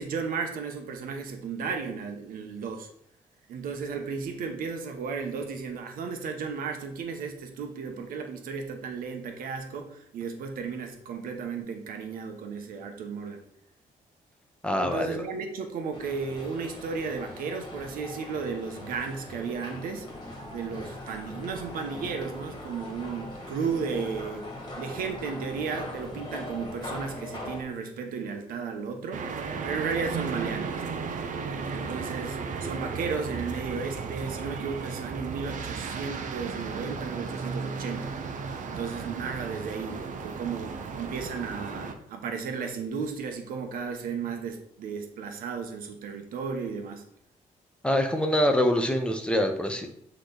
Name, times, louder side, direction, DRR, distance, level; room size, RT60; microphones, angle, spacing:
voice 1, 0.0-2.9 3.5-13.4 14.8-20.1 20.5-24.5 24.8-29.2 29.6-30.8 31.7-38.1 38.6-47.0, right 5 dB, 90° right, 5 dB, 1.1 m, -34 dB
voice 2, 14.6-15.2 47.8-49.9, left 1 dB, 5° left, 5 dB, 0.9 m, -25 dB
sound 1, 15.9-27.6, left 1 dB, 30° left, 1.9 m, -40 dB
sound 2, 29.1-41.9, right 5 dB, 65° right, 0.8 m, -35 dB
8.9 x 3.4 x 4.0 m, 0.68 s
cardioid pair, 105°, 14 cm